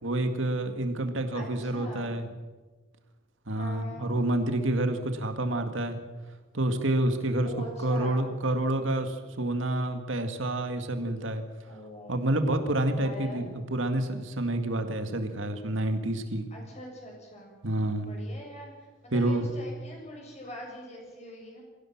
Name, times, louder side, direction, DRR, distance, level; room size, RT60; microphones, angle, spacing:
voice 1, 0.0-2.3 3.5-6.0 6.5-7.5 7.8-11.4 12.1-16.5 17.6-18.1 19.1-19.5, right 1 dB, 85° right, 6 dB, 2.0 m, -28 dB
voice 2, 1.3-2.1 3.5-4.1 7.4-8.3 11.6-12.2 12.9-13.5 16.5-17.5 18.0-21.6, left 1 dB, 35° left, 0 dB, 7.1 m, -43 dB
22.5 x 16.0 x 7.3 m, 1.3 s
head